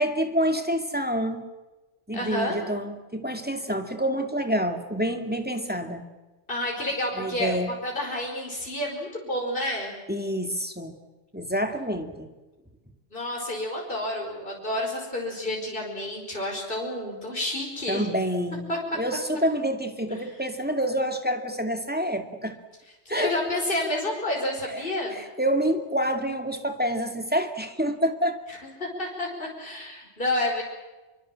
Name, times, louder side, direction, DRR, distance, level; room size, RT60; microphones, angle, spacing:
voice 1, 0.0-1.4 2.1-6.0 7.2-7.7 10.1-11.0 11.3-12.3 17.9-18.7 18.9-22.6 23.1-23.3 24.7-24.8 25.2-28.4, equal, 10° right, 5 dB, 2.3 m, -27 dB
voice 2, 2.1-2.6 6.5-9.9 13.1-18.0 18.7-18.8 23.1-25.2 28.8-30.6, left 1 dB, 50° left, -1 dB, 5.5 m, -29 dB
26.5 x 24.0 x 7.6 m, 1.2 s
omnidirectional pair, 1.2 m